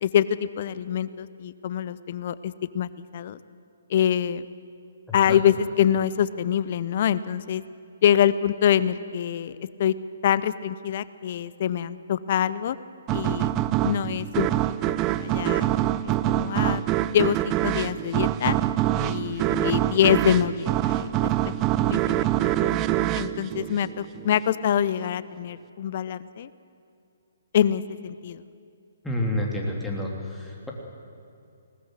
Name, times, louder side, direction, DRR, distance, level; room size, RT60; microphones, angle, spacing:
voice 1, 0.0-3.4 3.9-4.4 5.1-7.6 8.0-10.0 10.2-12.8 13.1-13.5 13.8-14.5 14.9-15.7 16.3-16.8 17.1-18.6 18.9-21.5 21.9-22.8 23.1-26.5 27.5-28.4, left 9 dB, 45° left, 16 dB, 0.7 m, -25 dB
voice 2, 5.1-5.4 29.0-30.7, left 1 dB, 5° left, -2 dB, 3.3 m, -29 dB
sound 1, 13.1-24.3, right 14 dB, 25° right, 0.6 m, -25 dB
20.0 x 19.5 x 7.9 m, 2.5 s
figure-of-eight pair, 130°, 0 cm